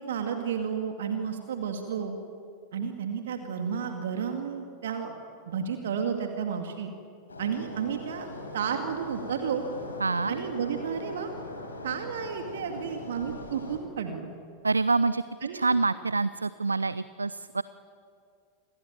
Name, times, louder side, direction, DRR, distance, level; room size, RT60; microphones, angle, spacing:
voice 1, 0.1-2.2 2.7-5.2 5.5-6.9 7.4-8.3 8.5-9.6 10.3-11.3 11.8-14.3 15.4-15.6, right 7 dB, 60° right, 4 dB, 2.3 m, -32 dB
sound 1, 7.3-13.8, left 1 dB, 75° left, 4.6 m, -41 dB
voice 2, 10.0-10.3 14.6-15.2 15.5-17.6, right 3 dB, 80° right, 17 dB, 0.6 m, -26 dB
28.5 x 22.0 x 8.8 m, 2.4 s
figure-of-eight pair, 90°, 0 cm